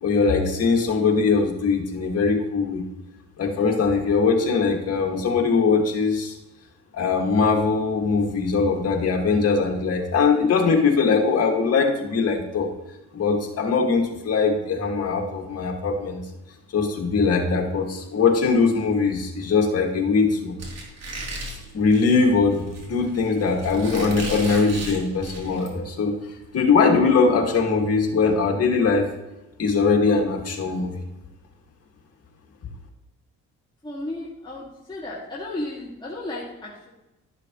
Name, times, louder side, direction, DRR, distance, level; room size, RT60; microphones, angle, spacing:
voice 1, 0.0-2.8 3.4-6.4 6.9-12.7 13.1-16.2 16.7-20.6 21.7-22.6 22.9-26.2 26.5-29.1 29.6-30.9, left 4 dB, 55° left, 1 dB, 2.2 m, -21 dB
Squeak, 20.6-25.7, right 1 dB, 60° right, 3.3 m, -36 dB
voice 2, 33.8-36.9, left 1 dB, 15° left, -6 dB, 2.2 m, -34 dB
12.5 x 6.8 x 3.1 m, 0.99 s
cardioid pair, 90°, 30 cm